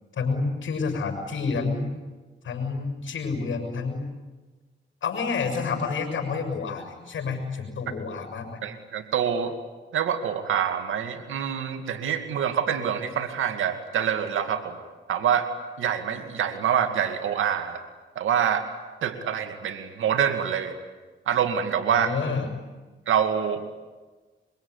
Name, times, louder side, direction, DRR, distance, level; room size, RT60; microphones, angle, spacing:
voice 1, 0.1-1.9 2.4-4.1 5.0-8.6 21.9-22.5, left 4 dB, 75° left, 5 dB, 7.0 m, -29 dB
voice 2, 8.6-9.5 9.9-14.8 15.1-15.5 15.8-17.8 18.2-18.6 19.0-20.8 21.3-22.1 23.1-23.6, right 8 dB, 90° right, 8 dB, 2.4 m, -26 dB
25.0 x 24.0 x 9.8 m, 1.3 s
cardioid pair, 60°, 20 cm